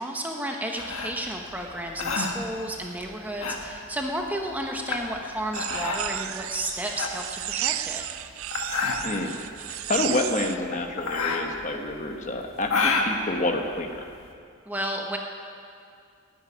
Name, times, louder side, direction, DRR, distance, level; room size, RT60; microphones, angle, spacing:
voice 1, 0.0-8.0 14.7-15.2, right 1 dB, 10° right, 1 dB, 1.0 m, -32 dB
sound 1, 0.8-14.3, left 4 dB, 85° left, 1.5 m, -31 dB
sound 2, 5.5-10.6, right 12 dB, 80° right, 0.5 m, -33 dB
voice 2, 9.7-13.9, left 2 dB, 35° left, 3 dB, 1.1 m, -28 dB
13.5 x 10.0 x 9.8 m, 2.4 s
head